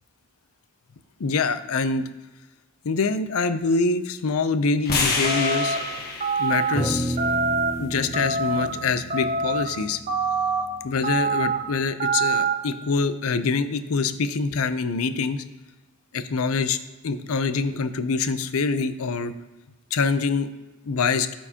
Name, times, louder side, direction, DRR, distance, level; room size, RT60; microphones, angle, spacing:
voice 1, 1.2-2.0 2.8-5.8 6.4-7.2 7.8-10.0 10.8-15.4 16.1-16.8 17.0-19.3 19.9-20.5 20.8-21.3, left 4 dB, 90° left, 11 dB, 0.5 m, -25 dB
sound 1, 4.8-9.0, left 3 dB, 45° left, 1.4 m, -30 dB
sound 2, 5.2-5.8 6.2-6.7 7.2-7.7 8.1-8.7 9.1-9.6 10.1-10.6 11.0-11.6 12.0-12.5, right 4 dB, 35° right, 1.1 m, -24 dB
sound 3, 6.7-11.3, right 1 dB, 10° right, 0.7 m, -32 dB
13.0 x 4.5 x 2.9 m, 1.1 s
head